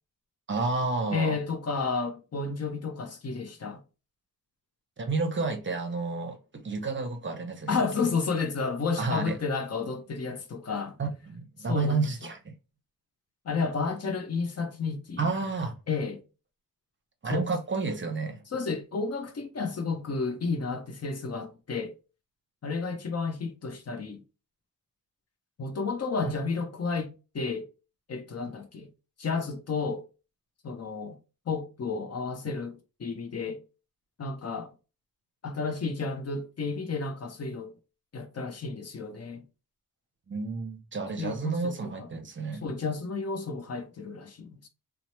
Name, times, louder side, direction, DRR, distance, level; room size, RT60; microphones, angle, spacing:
voice 1, 0.5-1.4 5.0-7.7 9.0-9.4 11.0-12.5 15.2-15.8 17.2-18.4 40.3-42.7, right 4 dB, 30° right, 0.7 m, -30 dB
voice 2, 1.1-3.8 7.7-11.0 11.7-12.0 13.4-15.3 15.9-16.2 17.3-17.4 18.5-21.9 22.6-24.2 25.6-27.7 28.1-28.9 29.2-30.0 30.6-31.2 31.5-33.6 34.2-34.7 35.4-37.7 38.1-39.4 41.2-42.1 42.6-44.7, left 4 dB, 40° left, 0.7 m, -32 dB
2.8 x 2.0 x 2.9 m
cardioid pair, 100°, 37 cm